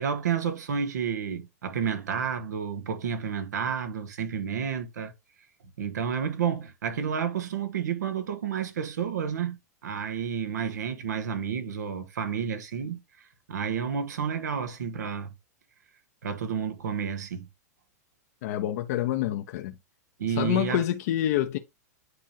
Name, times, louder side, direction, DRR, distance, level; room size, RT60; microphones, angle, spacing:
voice 1, 0.0-5.1 5.8-15.3 16.2-17.5 20.2-20.8, right 7 dB, 80° right, 1.5 m, -30 dB
voice 2, 18.4-19.7 20.3-21.6, left 12 dB, 60° left, 0.9 m, -27 dB
9.7 x 3.6 x 2.9 m
hypercardioid pair, 120°, 9 cm